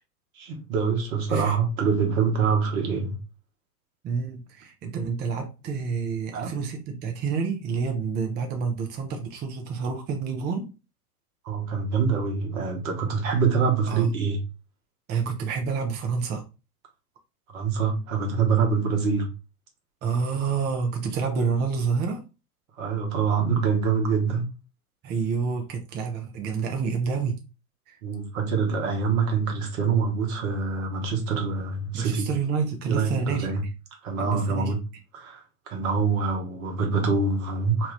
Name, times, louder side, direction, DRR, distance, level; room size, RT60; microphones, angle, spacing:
voice 1, 0.4-3.2 6.3-6.5 11.4-14.4 17.5-19.3 22.8-24.5 28.0-32.3 32.9-33.6 34.0-34.8 35.1-37.9, right 5 dB, 65° right, 1.1 m, -25 dB
voice 2, 4.0-10.7 13.9-14.1 15.1-16.4 20.0-22.2 25.0-27.4 27.9-28.0 31.9-33.7 34.2-34.7, right 5 dB, 25° right, 0.5 m, -28 dB
2.9 x 2.3 x 3.2 m
hypercardioid pair, 90°, 44 cm